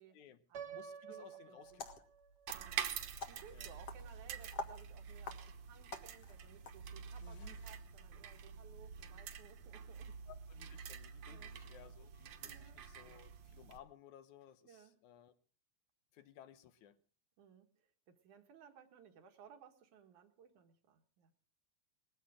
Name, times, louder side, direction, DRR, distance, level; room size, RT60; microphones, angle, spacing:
voice 1, 0.1-0.4 0.7-1.9 3.5-3.8 7.2-7.6 10.3-15.3 16.1-17.0, left 11 dB, 80° left, 2.5 m, -59 dB
Piano, 0.5-2.5, right 8 dB, 45° right, 1.5 m, -50 dB
voice 2, 1.1-1.8 2.5-2.9 3.3-10.1 11.3-11.5 12.4-12.8 14.6-15.0 17.4-17.7 18.1-21.3, right 7 dB, 85° right, 3.2 m, -60 dB
sound 1, 1.6-7.8, left 4 dB, 55° left, 2.5 m, -50 dB
sound 2, 2.5-13.8, right 7 dB, 65° right, 2.2 m, -47 dB
20.5 x 15.5 x 3.7 m
omnidirectional pair, 3.4 m